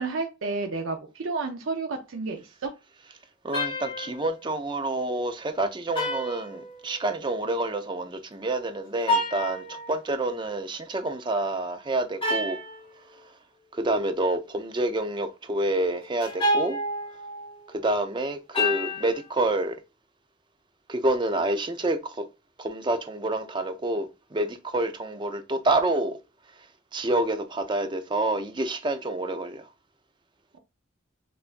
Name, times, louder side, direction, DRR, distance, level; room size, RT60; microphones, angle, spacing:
voice 1, 0.0-2.7, right 3 dB, 85° right, 0.6 m, -31 dB
voice 2, 3.4-12.6 13.7-16.8 17.7-19.8 20.9-22.2 22.6-26.2 26.9-29.6, right 2 dB, 25° right, 0.5 m, -28 dB
sound 1, 3.5-4.3 6.0-7.1 9.0-10.0 12.2-12.8 16.2-17.5 18.5-19.3, left 1 dB, 25° left, 1.1 m, -29 dB
6.8 x 2.5 x 2.5 m
head